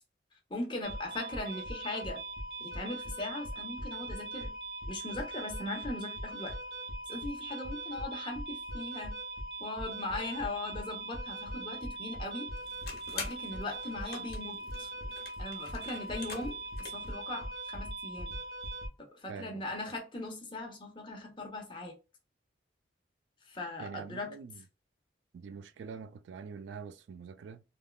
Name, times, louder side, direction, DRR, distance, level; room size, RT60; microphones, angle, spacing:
voice 1, 0.5-2.2 2.6-4.5 4.9-6.5 7.1-9.2 9.6-12.5 13.1-14.9 15.4-16.6 16.9-18.4 19.0-21.9 23.5-24.3, left 2 dB, 25° left, 0.8 m, -39 dB
sound 1, 0.8-18.9, right 1 dB, 55° right, 0.8 m, -40 dB
sound 2, 12.5-17.2, left 4 dB, 55° left, 1.1 m, -46 dB
voice 2, 19.3-19.6 23.8-24.6 25.3-27.6, right 6 dB, 85° right, 0.3 m, -45 dB
3.5 x 2.3 x 2.3 m
head